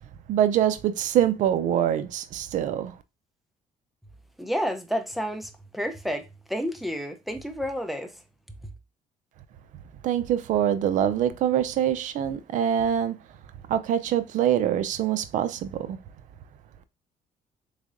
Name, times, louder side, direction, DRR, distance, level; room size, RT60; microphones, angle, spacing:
voice 1, 0.3-2.9 10.0-13.2 13.7-16.0, right 10 dB, 65° right, 0.4 m, -24 dB
voice 2, 4.4-8.2 8.6-8.7, equal, ahead, 0.4 m, -30 dB
3.5 x 3.3 x 2.4 m
cardioid pair, 120°, 14 cm